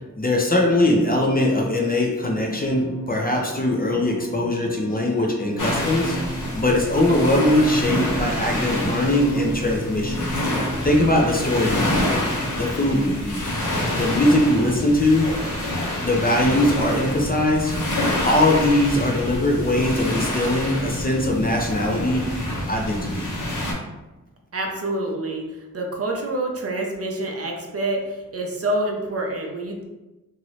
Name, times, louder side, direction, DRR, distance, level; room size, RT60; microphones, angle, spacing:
voice 1, 0.2-10.3 10.8-12.2 12.6-13.4 13.9-15.3 16.0-17.7 18.2-22.3 22.7-23.3, left 1 dB, 30° left, 0 dB, 0.5 m, -21 dB
sound 1, 2.4-12.4, right 1 dB, ahead, 0.9 m, -34 dB
sound 2, 5.6-23.7, left 1 dB, 70° left, 1.0 m, -27 dB
voice 2, 24.5-25.5 25.7-29.8, right 1 dB, 50° right, 1 dB, 0.6 m, -27 dB
2.9 x 2.6 x 3.0 m, 1.1 s
wide cardioid pair, 100°, 32 cm